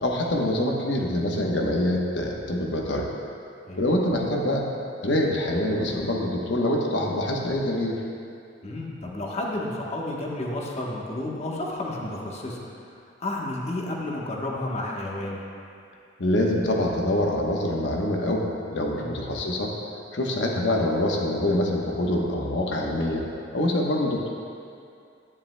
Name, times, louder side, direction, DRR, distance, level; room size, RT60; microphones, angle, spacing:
voice 1, 0.0-3.1 3.8-4.6 5.0-8.0 16.2-19.7 20.1-23.3 23.5-24.3, left 1 dB, 75° left, -1 dB, 1.0 m, -25 dB
voice 2, 8.6-12.6 13.2-15.4 19.0-19.3, left 1 dB, 35° left, -2 dB, 1.1 m, -31 dB
11.0 x 10.0 x 2.2 m, 2.5 s
head